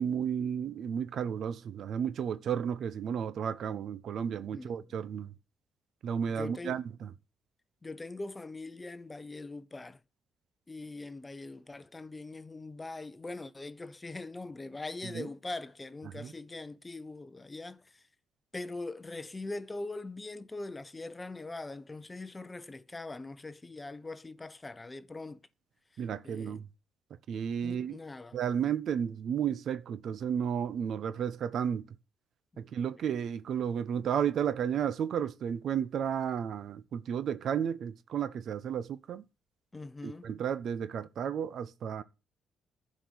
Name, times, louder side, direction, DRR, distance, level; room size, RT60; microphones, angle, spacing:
voice 1, 0.0-5.3 6.0-7.1 15.0-15.3 16.1-16.3 26.0-26.7 27.3-28.0 28.3-31.9 32.6-39.2 40.0-42.0, right 8 dB, 65° right, 1.0 m, -33 dB
voice 2, 4.5-4.9 6.3-6.8 7.8-10.0 10.7-18.0 18.5-25.5 25.9-26.6 27.6-28.4 32.5-32.7 33.0-33.1 39.7-40.3, left 2 dB, 20° left, 0.8 m, -42 dB
11.5 x 5.3 x 8.1 m
cardioid pair, 90°, 0 cm